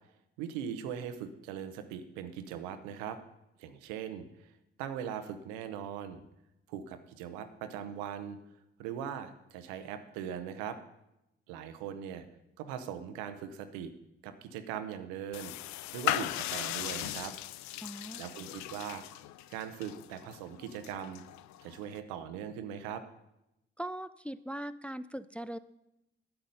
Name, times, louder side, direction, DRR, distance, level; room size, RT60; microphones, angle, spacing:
voice 1, 0.4-3.2 3.6-4.5 4.8-6.2 6.7-8.4 8.8-10.8 11.5-12.2 12.6-13.9 14.2-15.5 15.9-17.3 18.2-19.0 19.5-21.2 21.6-23.0, right 8 dB, 85° right, 10 dB, 0.7 m, -40 dB
sound 1, 15.3-22.0, left 15 dB, 70° left, 0.5 m, -38 dB
voice 2, 17.8-18.2 23.8-25.6, right 1 dB, 5° left, 13 dB, 0.4 m, -40 dB
8.9 x 7.9 x 5.3 m, 0.87 s
hypercardioid pair, 40°, 29 cm